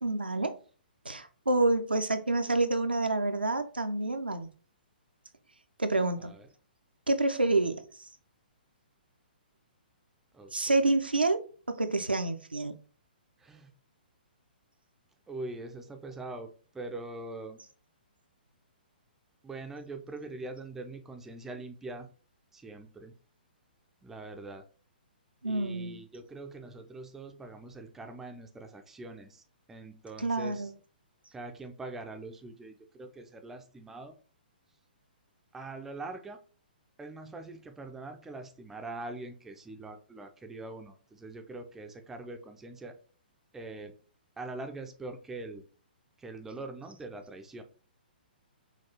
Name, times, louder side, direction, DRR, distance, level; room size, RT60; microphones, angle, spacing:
voice 1, 0.0-0.6 1.1-4.5 5.8-6.4 7.1-7.8 10.5-11.4 11.7-12.7 25.4-26.0 30.2-30.7, right 2 dB, 80° right, 0.5 m, -28 dB
voice 2, 15.3-17.6 19.4-22.1 22.5-23.1 24.0-24.6 25.4-29.4 29.7-30.7 31.3-34.1 35.5-36.4 37.0-43.0 43.5-43.9 44.4-45.6 46.2-47.6, right 2 dB, 5° right, 0.4 m, -43 dB
5.7 x 2.3 x 2.8 m
figure-of-eight pair, 120°, 5 cm